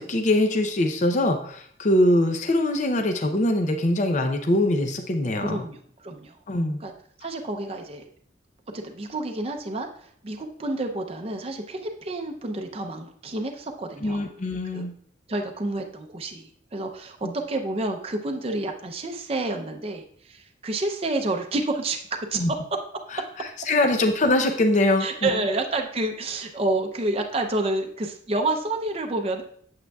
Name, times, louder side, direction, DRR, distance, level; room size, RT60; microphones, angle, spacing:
voice 1, 0.0-5.6 6.5-6.8 14.0-14.9 17.2-17.3 22.3-22.5 23.1-25.4, left 1 dB, 40° left, 5 dB, 0.6 m, -23 dB
voice 2, 5.4-6.4 6.8-6.9 7.2-8.0 8.7-14.3 14.7-14.9 15.3-22.0 22.3-22.6 25.0-29.4, right 2 dB, 30° right, 3 dB, 0.6 m, -29 dB
8.6 x 7.8 x 2.3 m, 0.62 s
head